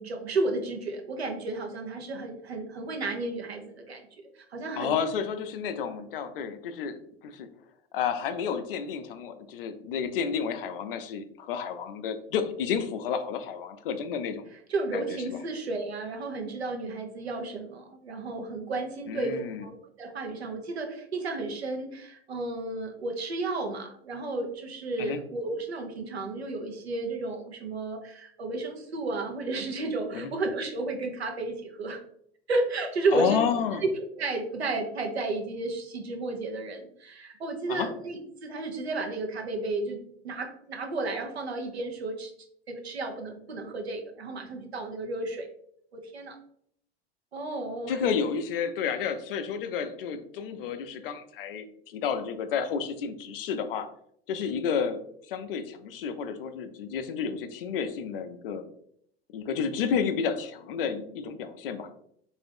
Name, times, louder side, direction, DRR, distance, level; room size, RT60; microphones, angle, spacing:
voice 1, 0.0-4.9 14.7-32.0 32.5-33.4 33.8-40.0 40.2-42.3 42.7-45.5 45.9-46.4 47.3-48.0, right 2 dB, 80° right, 3 dB, 0.8 m, -32 dB
voice 2, 4.8-7.5 7.9-14.4 14.9-15.4 19.1-19.7 25.0-25.2 30.1-30.3 33.1-33.8 37.7-37.9 47.9-53.9 54.3-55.0 55.3-58.6 59.3-61.9, left 7 dB, 60° left, 10 dB, 0.5 m, -31 dB
3.7 x 2.6 x 3.4 m, 0.68 s
figure-of-eight pair, 80°, 32 cm